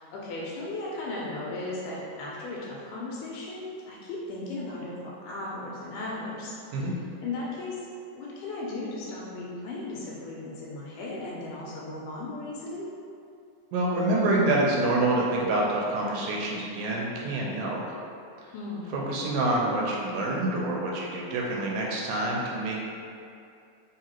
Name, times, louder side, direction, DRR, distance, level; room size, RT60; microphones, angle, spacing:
voice 1, 0.0-6.8 7.2-7.9 8.2-12.9 18.5-19.0, left 2 dB, 85° left, -5 dB, 2.1 m, -36 dB
voice 2, 13.7-17.8 18.9-22.8, right 2 dB, 80° right, -3 dB, 1.9 m, -27 dB
4.8 x 2.9 x 2.9 m, 2.5 s
omnidirectional pair, 3.6 m